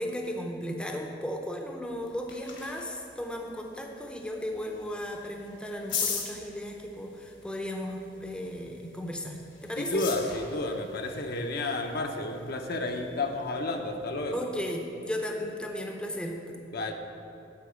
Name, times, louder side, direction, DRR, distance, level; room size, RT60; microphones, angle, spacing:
voice 1, 0.0-10.0 12.9-13.0 14.3-16.6, equal, 5° left, 1 dB, 0.6 m, -35 dB
sound 1, 1.8-14.4, left 6 dB, 75° left, 1.5 m, -42 dB
voice 2, 9.8-14.4 16.7-16.9, left 2 dB, 60° left, 4 dB, 0.7 m, -31 dB
9.7 x 4.0 x 7.0 m, 2.6 s
head